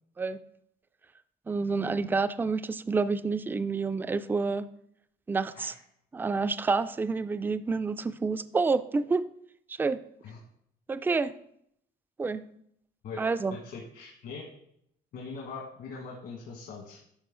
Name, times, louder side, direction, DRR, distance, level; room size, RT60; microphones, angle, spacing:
voice 1, 1.5-4.7 5.3-5.7 6.1-9.2 9.7-10.0 10.9-11.3 12.2-12.4 13.2-13.6, right 4 dB, 10° right, 13 dB, 0.3 m, -28 dB
voice 2, 13.0-14.5 15.1-17.0, left 4 dB, 70° left, -2 dB, 1.7 m, -41 dB
11.0 x 4.2 x 3.8 m, 0.72 s
cardioid pair, 110°, 17 cm